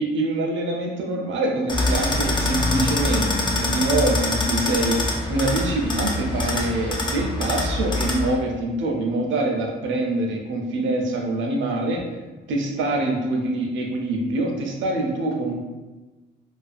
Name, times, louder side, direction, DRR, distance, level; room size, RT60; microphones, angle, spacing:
voice 1, 0.0-12.0 12.5-15.6, right 2 dB, 75° right, 1 dB, 0.5 m, -25 dB
sound 1, 1.7-8.3, left 2 dB, 25° left, 0.4 m, -24 dB
2.5 x 2.3 x 2.4 m, 1.2 s
cardioid pair, 90°, 20 cm